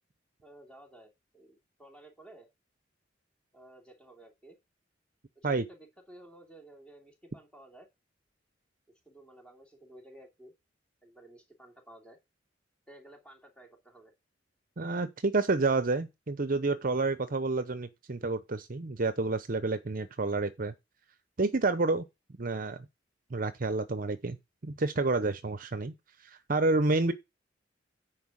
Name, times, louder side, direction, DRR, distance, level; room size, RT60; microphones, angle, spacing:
voice 1, 0.4-2.5 3.5-4.6 5.4-7.9 9.0-10.5 11.0-12.2 12.9-14.1, right 1 dB, 5° left, 2.8 m, -54 dB
voice 2, 14.8-20.7 21.4-22.1 22.4-22.8 23.3-24.4 24.6-25.9 26.2-27.1, right 3 dB, 45° right, 0.7 m, -29 dB
10.0 x 4.6 x 7.3 m
head